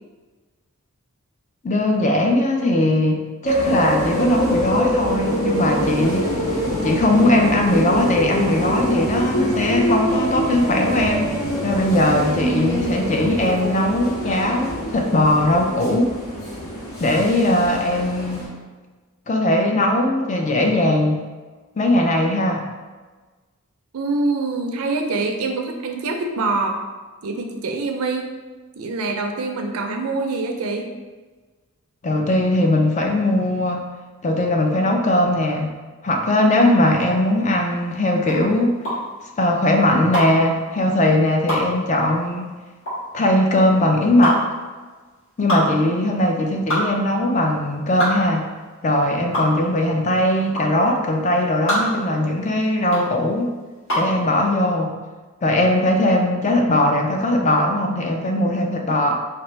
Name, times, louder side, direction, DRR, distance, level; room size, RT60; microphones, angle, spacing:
voice 1, 1.6-6.3 6.8-11.3 11.6-16.1 17.0-18.5 19.3-21.2 21.8-22.7 32.0-33.8 34.2-35.7 36.0-38.7 39.4-42.5 43.1-44.5 45.4-48.5 48.8-53.5 53.9-54.9 55.4-59.1, left 1 dB, 35° left, 2 dB, 0.4 m, -19 dB
sound 1, 3.4-18.5, equal, 85° left, 1.3 m, -25 dB
voice 2, 23.9-26.8 27.2-28.3 28.8-30.9 49.6-49.7, right 3 dB, 85° right, 4 dB, 0.5 m, -25 dB
sound 2, 36.9-54.2, equal, 60° left, 1.4 m, -26 dB
4.3 x 2.4 x 3.2 m, 1.3 s
head